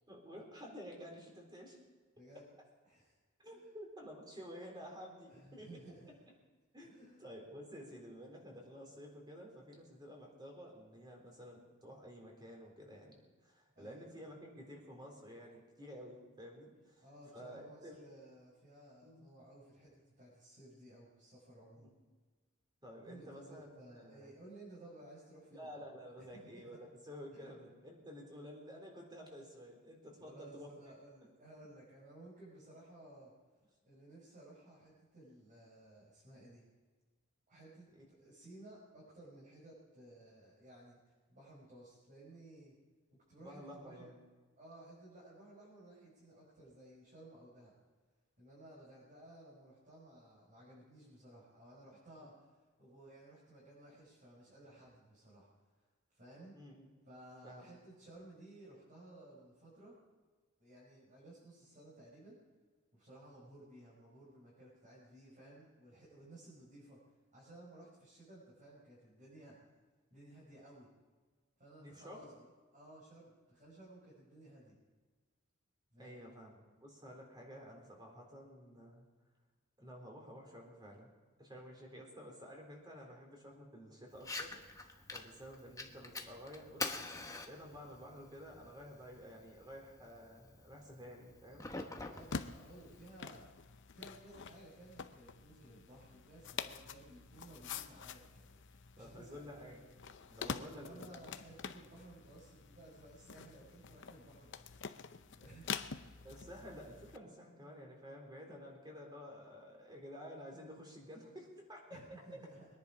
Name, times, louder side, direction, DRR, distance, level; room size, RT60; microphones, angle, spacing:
voice 1, 0.1-1.8 3.4-5.8 6.7-18.0 19.0-19.2 21.8-21.9 22.8-24.3 25.5-30.7 38.0-38.1 43.4-44.2 56.5-56.9 57.4-57.7 71.8-72.2 76.0-79.1 79.8-81.1 81.4-91.7 99.0-101.2 106.2-112.2, equal, 20° right, 0 dB, 3.9 m, -52 dB
voice 2, 5.3-6.1 6.8-7.2 13.8-14.0 17.0-21.9 23.0-25.7 26.2-26.8 27.3-27.5 30.2-33.3 33.8-36.6 37.5-41.0 41.3-42.7 43.1-44.1 44.6-47.7 48.4-55.5 56.1-56.6 57.1-59.9 60.6-62.4 62.9-67.0 67.3-69.7 70.1-70.9 71.6-74.8 75.9-76.2 82.9-83.0 91.8-93.5 93.9-99.4 100.3-104.6 105.4-106.1 111.9-112.7, right 1 dB, 40° right, -7 dB, 5.5 m, -57 dB
Fire, 84.1-93.1, left 3 dB, 15° left, 1.2 m, -47 dB
sound 1, 92.2-107.2, left 6 dB, 60° left, 0.7 m, -47 dB
23.0 x 10.5 x 5.0 m, 1.4 s
head